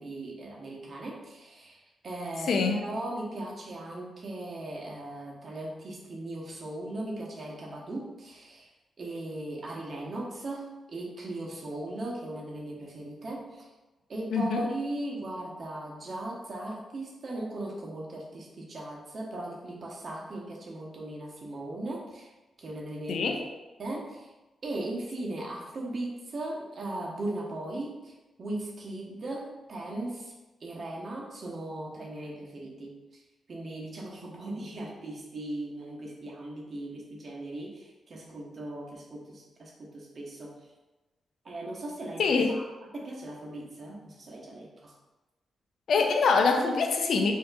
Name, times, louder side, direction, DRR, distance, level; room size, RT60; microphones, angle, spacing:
voice 1, 0.0-8.7 9.0-13.7 14.1-22.3 22.6-23.5 23.8-24.3 24.6-30.3 30.6-33.2 33.5-40.6 41.4-42.6 42.9-44.9, right 1 dB, 55° right, -2 dB, 1.0 m, -38 dB
voice 2, 14.3-14.7 23.1-23.4 42.2-42.6 45.9-47.3, left 4 dB, 70° left, 4 dB, 0.5 m, -24 dB
5.4 x 2.8 x 2.3 m, 1.1 s
supercardioid pair, 50°, 0 cm